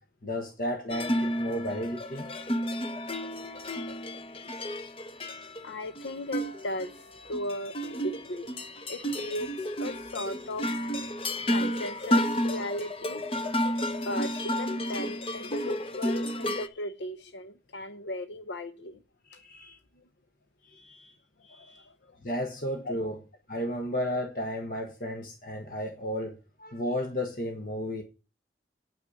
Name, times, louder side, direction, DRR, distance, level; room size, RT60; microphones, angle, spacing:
voice 1, 0.2-2.3 13.1-13.2 16.3-16.4 19.2-19.8 20.6-21.2 21.4-21.9 22.2-23.2 23.5-28.0, equal, 50° left, 1.4 m, -34 dB
sound 1, 0.9-16.7, equal, 30° left, 0.9 m, -31 dB
voice 2, 5.6-8.5 8.9-10.7 11.5-13.2 14.0-19.0 20.0-20.1 21.5-22.2 22.8-23.0, left 1 dB, 90° left, 0.8 m, -37 dB
9.2 x 6.0 x 8.3 m
head